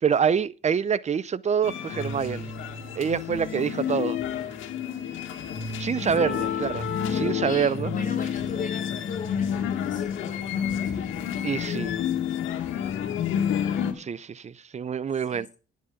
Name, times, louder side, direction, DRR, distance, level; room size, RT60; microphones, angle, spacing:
voice 1, 0.0-2.5 2.9-4.2 5.8-7.9 11.4-11.9 13.9-15.5, right 7 dB, 35° right, 0.6 m, -26 dB
sound 1, 1.6-13.9, left 8 dB, 85° left, 2.1 m, -29 dB
voice 2, 6.2-6.6 7.4-11.1 11.3-11.4 15.1-15.5, left 5 dB, 45° left, 4.8 m, -39 dB
10.0 x 9.3 x 5.1 m
cardioid pair, 90°, 20 cm